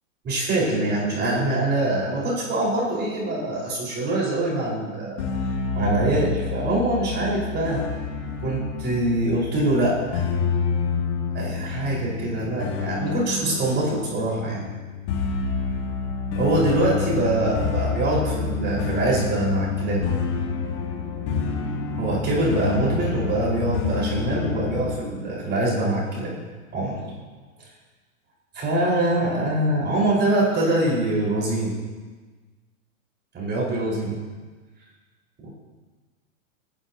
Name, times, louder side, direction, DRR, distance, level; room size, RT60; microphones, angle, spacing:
voice 1, 0.2-5.2 5.8-7.8 8.4-10.3 11.3-14.6 16.4-20.0 22.0-26.4 26.7-27.1 28.5-31.8 33.3-34.2 35.4-35.5, right 1 dB, 25° right, -4 dB, 5.0 m, -24 dB
sound 1, 5.2-25.0, left 5 dB, 50° left, 2.2 m, -28 dB
25.5 x 10.0 x 2.9 m, 1.4 s
hypercardioid pair, 115°, 41 cm